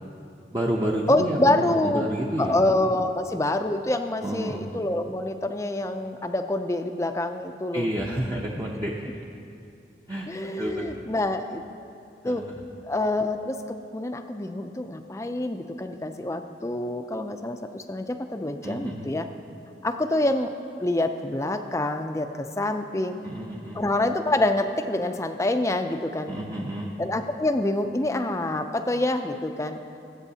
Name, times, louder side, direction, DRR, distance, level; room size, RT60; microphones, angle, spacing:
voice 1, 0.5-2.6 4.2-4.6 7.7-8.9 10.1-10.3 10.6-10.9 12.2-12.5 18.6-19.1 23.2-23.8 26.3-26.9, right 1 dB, 20° right, -3 dB, 0.6 m, -29 dB
voice 2, 1.1-2.1 2.4-7.9 10.3-11.6 12.2-12.5 12.8-13.6 13.9-19.3 19.8-20.5 20.8-23.1 23.7-26.3 27.0-30.0, left 1 dB, 15° left, 7 dB, 0.4 m, -26 dB
20.5 x 8.1 x 2.8 m, 2.6 s
head